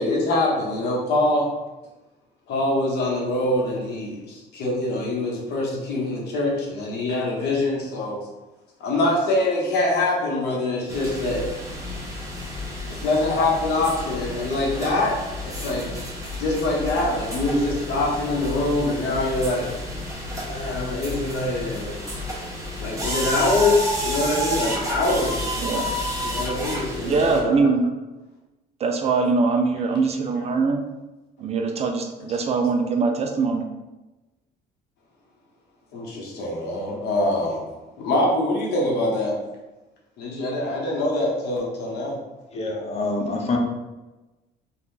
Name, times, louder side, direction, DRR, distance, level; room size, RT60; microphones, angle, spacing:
voice 1, 0.0-1.5 2.5-8.2 8.8-11.5 12.9-19.7 20.5-22.0 22.8-25.5 26.2-27.7 35.9-37.6 38.0-39.4 40.2-42.2, left 2 dB, 75° left, -3 dB, 1.1 m, -24 dB
sound 1, 10.9-27.4, equal, 20° right, 0.9 m, -30 dB
voice 2, 25.6-25.9 27.0-27.9 28.8-30.8 31.4-33.6, right 4 dB, 40° right, 4 dB, 0.4 m, -22 dB
voice 3, 42.5-43.6, left 3 dB, 40° left, 1 dB, 0.7 m, -26 dB
2.7 x 2.4 x 3.7 m, 1.1 s
cardioid pair, 110°, 17 cm